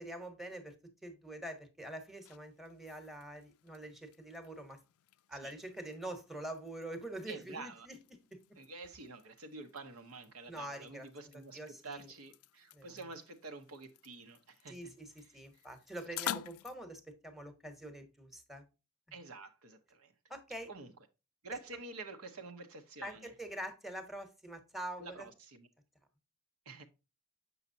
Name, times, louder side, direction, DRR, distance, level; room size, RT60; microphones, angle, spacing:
voice 1, 0.0-4.8 5.3-8.0 8.3-8.4 10.5-11.1 11.3-12.1 12.7-13.0 14.7-18.6 20.3-20.7 23.0-25.3, right 1 dB, ahead, 1.0 m, -45 dB
sound 1, 1.9-16.8, left 11 dB, 90° left, 0.4 m, -50 dB
voice 2, 7.3-7.9 8.6-14.9 19.1-20.1 20.7-20.9 21.4-23.3 25.0-25.7 26.7-26.9, right 3 dB, 75° right, 0.9 m, -48 dB
7.2 x 5.6 x 2.6 m
head